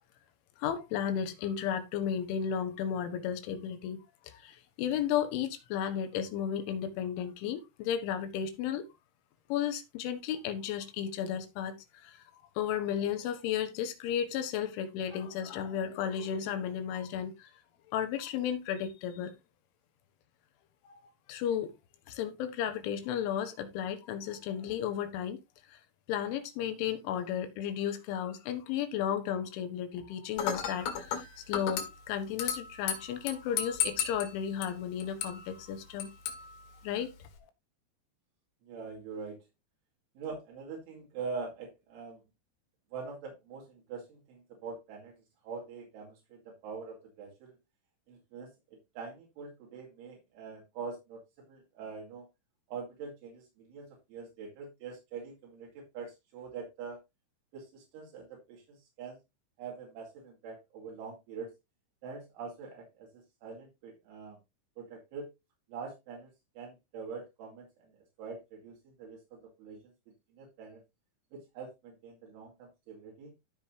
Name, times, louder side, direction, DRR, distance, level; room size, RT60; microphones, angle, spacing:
voice 1, 0.6-4.0 4.2-8.9 9.5-17.6 17.9-19.3 20.9-21.0 21.3-21.7 22.1-25.4 25.7-25.8 26.1-36.1 36.8-37.1, left 9 dB, 85° left, 3.7 m, -34 dB
Dishes pots and pans / Glass, 30.4-37.4, left 8 dB, 70° left, 3.7 m, -37 dB
voice 2, 38.6-39.4 40.2-42.2 42.9-45.2 45.4-47.6 48.1-48.5 49.0-51.2 51.5-52.3 52.7-57.0 57.5-59.2 59.6-61.5 62.0-64.4 64.8-65.3 65.7-66.3 66.6-67.7 68.2-69.9 70.3-70.8 71.3-73.3, right 5 dB, 85° right, 4.8 m, -44 dB
15.0 x 5.0 x 2.8 m
omnidirectional pair, 5.4 m